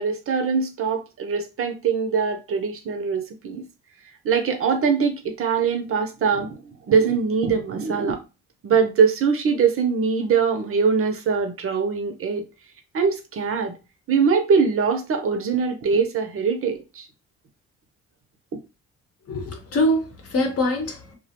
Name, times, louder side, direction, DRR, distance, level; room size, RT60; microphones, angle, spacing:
voice 1, 0.0-3.7 4.2-6.6 6.9-8.2 8.6-12.4 12.9-13.8 14.1-17.1, right 5 dB, 45° right, 0.6 m, -22 dB
voice 2, 19.3-21.1, left 1 dB, 50° left, 0.8 m, -24 dB
2.3 x 2.1 x 2.7 m
cardioid pair, 90°, 30 cm